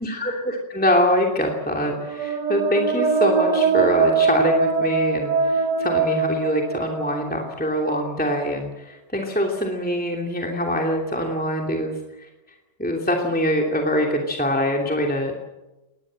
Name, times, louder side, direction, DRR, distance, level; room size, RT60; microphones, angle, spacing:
voice 1, 0.0-12.3 12.8-15.3, equal, 5° left, 0 dB, 2.8 m, -24 dB
sound 1, 1.8-7.5, right 5 dB, 70° right, 2.3 m, -22 dB
23.5 x 19.5 x 7.7 m, 1.0 s
omnidirectional pair, 1.9 m